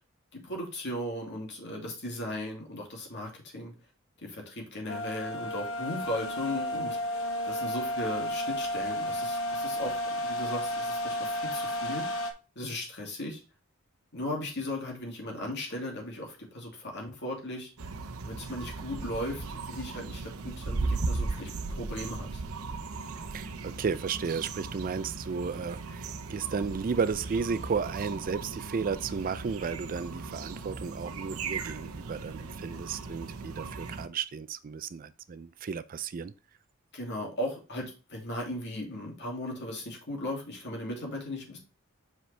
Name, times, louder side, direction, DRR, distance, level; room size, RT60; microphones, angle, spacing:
voice 1, 0.3-3.7 4.2-7.1 7.4-12.1 12.6-13.4 14.1-17.7 18.2-22.4 36.9-41.6, left 1 dB, 55° left, 2.4 m, -37 dB
sound 1, 4.9-12.3, left 1 dB, 70° left, 1.1 m, -32 dB
sound 2, 17.8-34.1, right 3 dB, 80° right, 0.8 m, -37 dB
voice 2, 23.3-36.3, right 5 dB, 40° right, 0.4 m, -33 dB
5.8 x 5.4 x 3.3 m
head